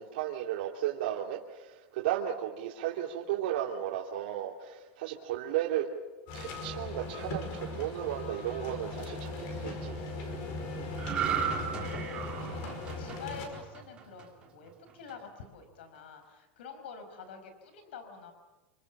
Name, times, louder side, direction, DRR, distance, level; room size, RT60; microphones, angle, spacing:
voice 1, 0.0-5.9 6.3-10.0, right 12 dB, 65° right, -3 dB, 2.7 m, -34 dB
sound 1, 6.3-13.5, left 2 dB, 40° left, 5.3 m, -38 dB
sound 2, 11.0-14.5 14.9-15.1, right 8 dB, 15° right, 2.9 m, -35 dB
voice 2, 11.1-18.3, left 5 dB, 85° left, 8 dB, 5.1 m, -48 dB
27.5 x 25.0 x 7.3 m, 1.1 s
supercardioid pair, 180°, 6 cm